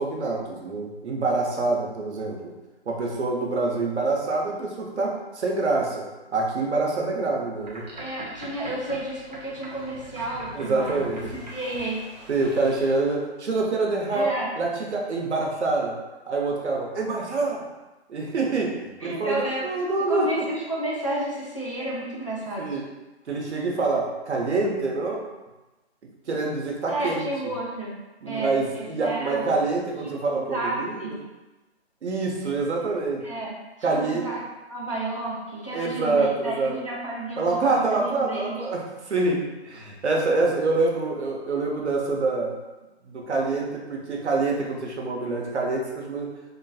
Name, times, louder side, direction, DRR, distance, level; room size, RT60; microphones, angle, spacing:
voice 1, 0.0-2.5 2.9-6.1 6.3-7.9 10.5-11.4 12.3-16.0 16.3-17.6 18.1-18.7 19.0-20.5 22.6-22.8 23.3-25.2 26.3-27.3 28.2-31.2 32.0-33.3 33.8-34.3 35.7-36.8 37.4-42.6 43.0-46.3, right 3 dB, 80° right, -1 dB, 0.8 m, -26 dB
Boat Water vehicle, 7.6-13.0, right 1 dB, 40° right, 0.6 m, -42 dB
voice 2, 8.0-12.0 14.1-14.5 19.0-19.6 20.1-22.8 26.9-28.0 28.3-29.6 30.0-31.2 33.2-33.6 33.9-34.4 34.7-38.6, right 1 dB, 30° left, -6 dB, 0.4 m, -31 dB
2.9 x 2.3 x 2.6 m, 1.1 s
hypercardioid pair, 170°, 33 cm